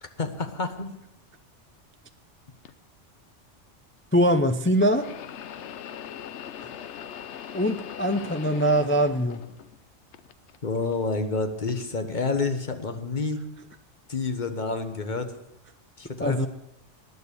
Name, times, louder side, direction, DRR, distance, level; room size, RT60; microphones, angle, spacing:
voice 1, 0.0-0.9 10.6-13.4 14.1-15.3 16.0-16.5, left 3 dB, 40° left, 7 dB, 1.3 m, -29 dB
sound 1, 2.6-2.7 4.7-9.8 10.1-10.9 11.7-11.8 12.8-12.9, left 9 dB, 70° left, 1.0 m, -40 dB
voice 2, 4.1-5.1 7.5-9.4 16.2-16.5, equal, 15° left, 8 dB, 0.4 m, -22 dB
19.5 x 6.8 x 6.9 m, 0.85 s
omnidirectional pair, 1.3 m